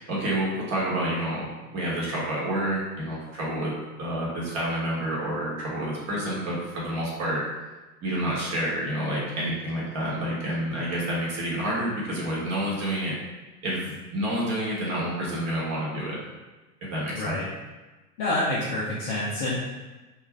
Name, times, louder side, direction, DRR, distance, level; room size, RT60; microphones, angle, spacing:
voice 1, 0.0-3.7 4.0-7.4 8.0-13.2 13.6-16.2 16.8-17.4, right 1 dB, 35° right, -5 dB, 1.1 m, -29 dB
voice 2, 17.1-17.5 18.2-19.6, left 1 dB, 30° left, -6 dB, 0.4 m, -27 dB
2.4 x 2.3 x 3.1 m, 1.2 s
hypercardioid pair, 105°, 47 cm